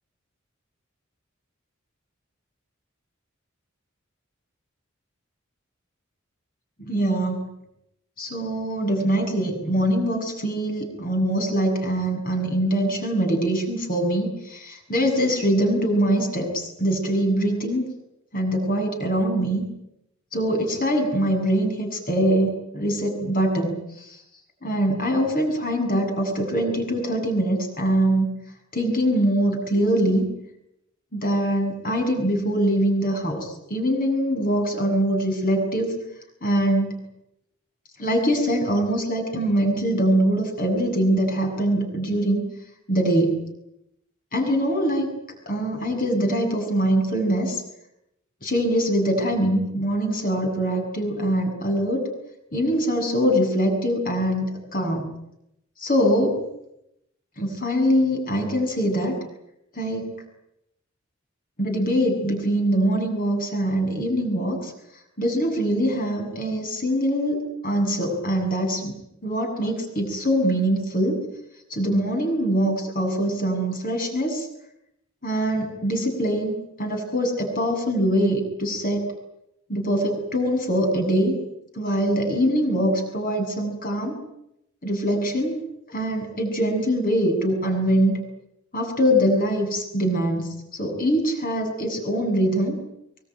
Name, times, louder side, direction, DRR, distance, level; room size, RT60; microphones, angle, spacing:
voice 1, 6.8-7.5 8.2-17.9 18.3-19.6 20.3-24.2 24.6-28.3 28.7-30.3 31.1-36.0 36.4-36.9 38.0-42.4 42.9-43.4 44.3-45.1 45.5-47.6 48.4-52.1 52.5-55.1 55.8-56.4 57.4-59.2 59.7-60.1 61.6-64.7 65.2-69.0 69.2-71.2 71.7-74.5 75.2-79.1 79.7-81.4 81.7-84.2 84.8-85.6 85.9-88.2 88.7-92.8, equal, 45° left, 3 dB, 7.5 m, -23 dB
23.5 x 23.5 x 9.3 m, 0.82 s
head